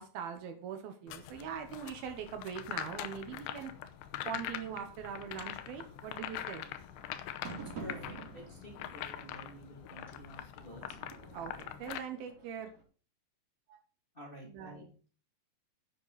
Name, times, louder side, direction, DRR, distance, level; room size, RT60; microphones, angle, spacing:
voice 1, 0.0-3.7 4.3-6.6 11.3-12.7 14.4-14.9, right 7 dB, 70° right, 7 dB, 2.9 m, -42 dB
sound 1, 1.1-12.0, left 12 dB, 85° left, 2.9 m, -43 dB
sound 2, 2.7-12.8, right 4 dB, 45° right, 4.3 m, -52 dB
voice 2, 7.8-10.8 14.1-14.9, equal, 15° left, -1 dB, 2.4 m, -50 dB
10.0 x 9.0 x 4.1 m, 0.38 s
omnidirectional pair, 4.7 m